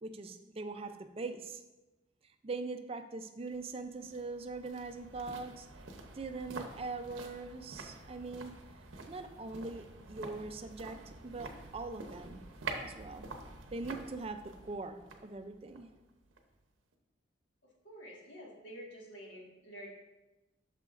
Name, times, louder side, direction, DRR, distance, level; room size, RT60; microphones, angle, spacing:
voice 1, 0.0-1.6 2.4-5.7 6.1-8.5 9.1-12.4 12.8-13.3 13.7-15.9, right 3 dB, 30° right, 7 dB, 0.4 m, -42 dB
sound 1, 3.5-16.6 16.9-17.0, right 3 dB, 90° right, 0.8 m, -48 dB
voice 2, 17.8-19.9, equal, 70° left, -3 dB, 1.8 m, -49 dB
8.6 x 6.6 x 2.5 m, 1.0 s
head